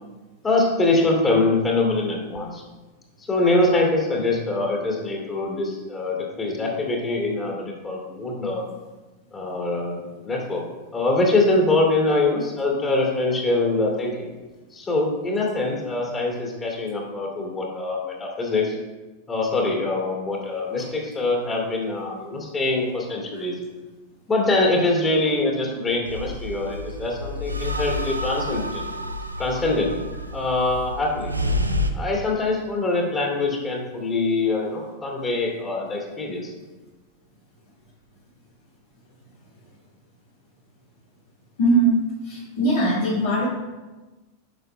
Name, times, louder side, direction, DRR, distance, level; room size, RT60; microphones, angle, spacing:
voice 1, 0.4-2.6 3.2-8.6 9.3-10.6 10.9-14.3 14.7-18.8 19.3-23.6 24.3-28.9 29.4-29.9 30.3-31.3 31.9-36.5, left 2 dB, 20° left, -1 dB, 2.5 m, -24 dB
sound 1, 26.0-31.9, left 1 dB, 85° right, 0.5 m, -29 dB
voice 2, 41.6-41.9 42.2-43.5, right 2 dB, 60° left, -7 dB, 1.9 m, -20 dB
10.5 x 6.5 x 2.2 m, 1.2 s
figure-of-eight pair, 90°, 0 cm